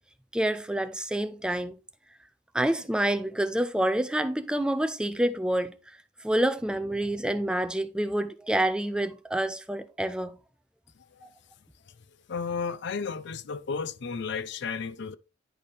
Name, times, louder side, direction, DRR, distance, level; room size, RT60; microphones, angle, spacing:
voice 1, 0.3-1.7 2.5-5.7 6.2-10.3, right 1 dB, 5° right, 0.4 m, -27 dB
voice 2, 12.3-15.2, left 5 dB, 60° left, 0.5 m, -33 dB
10.0 x 4.2 x 3.3 m
head